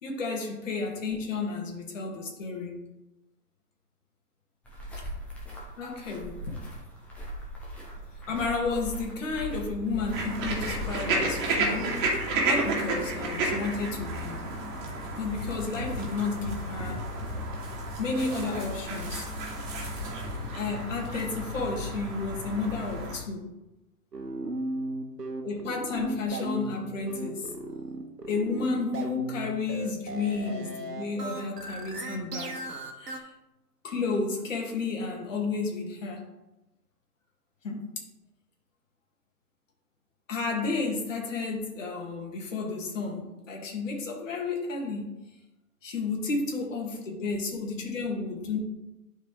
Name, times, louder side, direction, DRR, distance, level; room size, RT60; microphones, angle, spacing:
voice 1, 0.0-2.8 5.8-6.6 8.3-12.0 12.5-14.5 15.2-17.1 18.0-19.3 20.5-23.5 25.4-27.5 28.2-32.6 33.0-33.3 33.8-36.2 37.6-37.9 40.3-45.1 45.8-48.6, left 4 dB, 50° left, 0 dB, 2.3 m, -32 dB
sound 1, 4.6-10.9, equal, 5° left, 0.6 m, -40 dB
sound 2, 10.1-23.2, right 2 dB, 30° right, 1.9 m, -32 dB
sound 3, 24.1-33.2, right 2 dB, 80° right, 1.3 m, -35 dB
11.0 x 4.7 x 3.3 m, 0.97 s
figure-of-eight pair, 120°, 48 cm